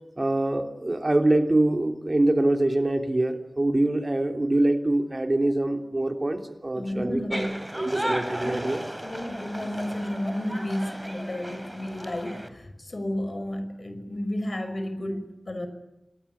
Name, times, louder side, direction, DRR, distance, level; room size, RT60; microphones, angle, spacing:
voice 1, 0.2-8.8, right 1 dB, 40° right, 5 dB, 3.2 m, -24 dB
voice 2, 6.7-7.7 8.1-8.6 9.0-15.7, left 1 dB, 50° left, 10 dB, 5.5 m, -32 dB
sound 1, 7.3-12.5, equal, 10° right, 3.4 m, -35 dB
27.5 x 20.0 x 10.0 m, 0.94 s
wide cardioid pair, 65°, 0 cm